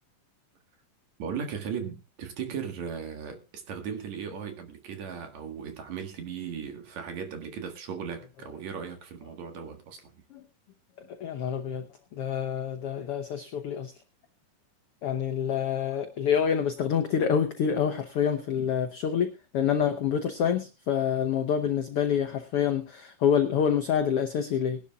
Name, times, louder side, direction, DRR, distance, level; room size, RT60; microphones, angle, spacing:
voice 1, 1.2-10.1, right 7 dB, 60° right, 2.8 m, -37 dB
voice 2, 11.2-11.9 12.1-13.9 15.0-24.8, left 8 dB, 70° left, 1.3 m, -27 dB
21.0 x 11.5 x 2.4 m
omnidirectional pair, 3.8 m